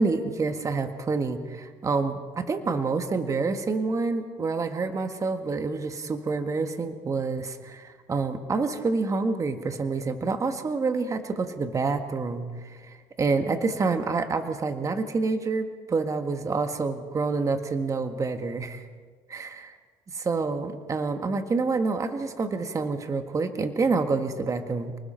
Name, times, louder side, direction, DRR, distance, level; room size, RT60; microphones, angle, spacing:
voice 1, 0.0-18.9 19.3-19.5 20.2-25.0, right 4 dB, 25° right, 7 dB, 1.7 m, -27 dB
30.0 x 19.5 x 4.5 m, 1.5 s
cardioid pair, 110°, 12 cm